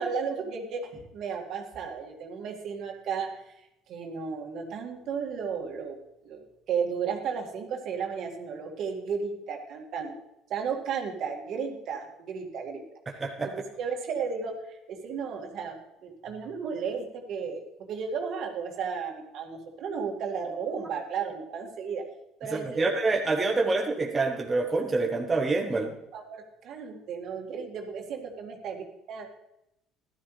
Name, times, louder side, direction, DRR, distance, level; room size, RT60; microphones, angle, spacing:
voice 1, 0.0-3.5 3.9-6.0 6.2-6.4 6.7-10.1 10.5-12.8 13.4-22.0 22.4-23.0 25.7-25.8 26.1-29.3, right 6 dB, 60° right, 2 dB, 2.2 m, -34 dB
voice 2, 13.2-13.5 22.5-26.0, right 3 dB, 20° right, 1 dB, 1.2 m, -26 dB
14.0 x 12.0 x 3.3 m, 0.87 s
cardioid pair, 110°, 0 cm